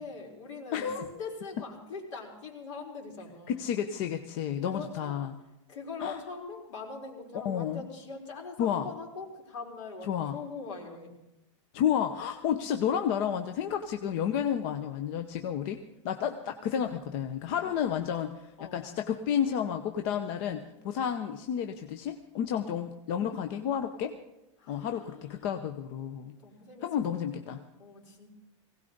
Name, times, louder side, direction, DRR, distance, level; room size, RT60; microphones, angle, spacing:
voice 1, 0.0-3.7 4.7-5.1 5.7-11.2 17.4-18.0 18.6-19.0 20.6-20.7 22.5-22.9 24.6-25.5 26.4-28.3, left 4 dB, 75° left, 0 dB, 4.5 m, -43 dB
voice 2, 0.7-1.1 3.5-5.3 6.0-6.2 7.4-7.9 8.6-8.9 10.1-10.3 11.7-15.8 16.0-24.2 24.7-26.3 26.8-27.6, left 9 dB, 50° left, 7 dB, 0.9 m, -31 dB
19.5 x 17.0 x 4.0 m, 0.93 s
supercardioid pair, 145°, 16 cm